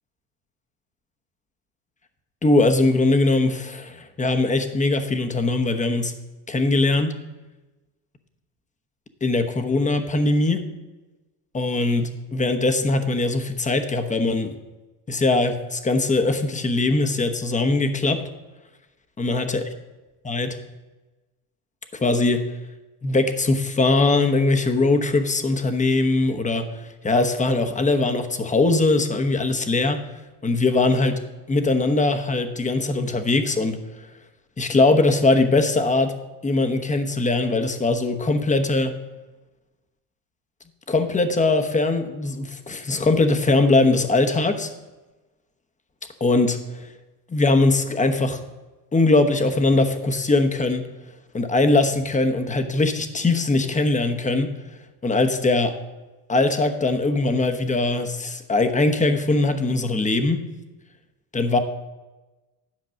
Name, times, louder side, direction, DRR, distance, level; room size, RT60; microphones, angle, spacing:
voice 1, 2.4-6.1 6.5-7.2 9.2-10.6 11.5-14.6 15.1-18.2 19.2-19.6 20.2-20.6 21.9-22.4 23.0-30.0 30.4-31.2 31.5-33.8 34.6-36.1 36.4-38.9 40.9-44.7 46.2-46.9 47.3-48.4 48.9-50.9 51.3-54.5 55.0-55.7 56.3-60.4 61.3-61.6, left 2 dB, 15° left, 7 dB, 1.0 m, -21 dB
10.5 x 5.2 x 6.3 m, 1.1 s
supercardioid pair, 85°, 47 cm